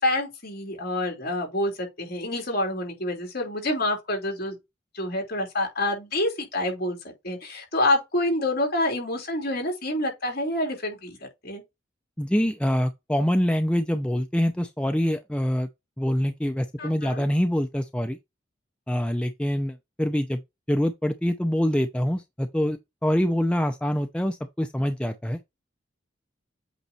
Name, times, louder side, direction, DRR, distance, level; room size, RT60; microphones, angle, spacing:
voice 1, 0.0-4.6 4.9-7.0 7.2-11.6 16.8-17.2, left 1 dB, 55° left, 3.3 m, -27 dB
voice 2, 12.2-15.7 16.0-18.2 18.9-20.4 20.7-25.4, equal, 5° left, 0.5 m, -25 dB
8.2 x 3.0 x 4.2 m
head